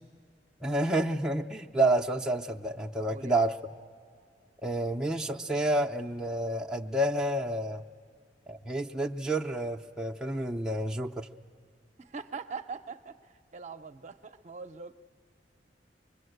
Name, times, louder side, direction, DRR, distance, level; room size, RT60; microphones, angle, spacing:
voice 1, 0.6-3.6 4.6-7.8 8.5-11.3, right 1 dB, 5° right, -2 dB, 0.5 m, -29 dB
voice 2, 3.1-3.5 12.0-13.2 13.5-14.9, right 5 dB, 40° right, 8 dB, 0.6 m, -42 dB
24.5 x 22.0 x 7.9 m, 2.3 s
head